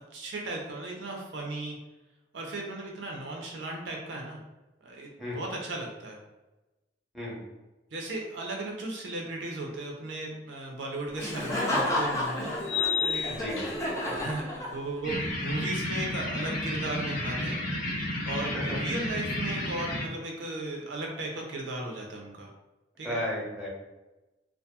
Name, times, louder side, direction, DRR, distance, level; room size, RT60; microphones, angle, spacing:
voice 1, 0.1-1.8 2.3-4.4 4.8-6.2 7.9-12.5 13.1-13.3 14.1-17.6 18.2-22.5 23.0-23.2, right 2 dB, 70° right, 0 dB, 0.5 m, -36 dB
sound 1, 11.0-11.1 12.6-14.1, left 8 dB, 80° left, 0.4 m, -31 dB
Laughter, 11.2-15.1, left 1 dB, 15° left, 0.4 m, -31 dB
voice 2, 13.3-13.6 18.5-18.8 23.0-23.7, left 1 dB, ahead, -6 dB, 0.8 m, -33 dB
sound 2, 15.0-20.0, left 1 dB, 45° left, 0.8 m, -32 dB
2.7 x 2.4 x 2.2 m, 1.1 s
head